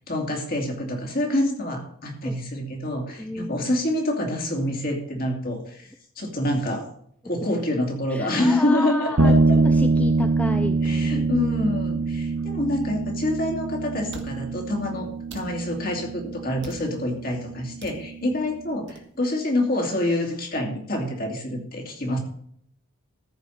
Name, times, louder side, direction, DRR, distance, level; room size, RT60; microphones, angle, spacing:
voice 1, 0.1-5.9 6.2-6.9 7.2-9.4 10.8-22.2, left 1 dB, 40° left, 1 dB, 2.6 m, -26 dB
voice 2, 3.2-3.7 8.1-9.3 9.6-11.3 14.9-15.0 18.3-18.4, left 1 dB, 5° left, 7 dB, 0.4 m, -31 dB
sound 1, 9.2-18.7, right 3 dB, 70° right, 1.1 m, -24 dB
sound 2, 13.3-13.4 14.1-14.3 15.3-15.5 16.6-16.9 17.8-18.0 18.9-19.1, right 2 dB, 55° right, 1.6 m, -42 dB
14.0 x 5.2 x 6.4 m, 0.66 s
head